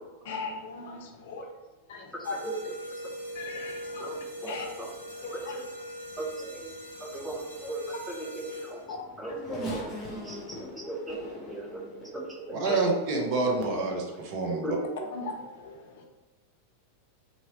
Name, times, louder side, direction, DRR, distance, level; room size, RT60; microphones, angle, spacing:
voice 1, 0.2-1.4 1.9-2.4 3.3-4.2 4.5-4.7 5.2-5.6 8.9-9.4 12.6-12.8 15.1-16.1, left 4 dB, 55° left, 2 dB, 0.5 m, -39 dB
voice 2, 2.1-2.6 3.0-3.1 4.0-4.2 4.4-4.9 5.3-5.6 6.2-8.8 9.2-9.8 10.2-11.2 11.5-12.8 14.4-14.8, right 2 dB, 5° right, -1 dB, 0.6 m, -37 dB
sound 1, 2.2-9.0, equal, 80° right, 0.7 m, -41 dB
Race car auto racing / Accelerating revving vroom, 8.5-13.0 13.7-13.8 15.0-15.1, equal, 20° left, 0.9 m, -41 dB
voice 3, 12.5-14.7, right 3 dB, 45° right, 0 dB, 0.7 m, -27 dB
2.9 x 2.6 x 2.9 m, 1.2 s
figure-of-eight pair, 90°, 0 cm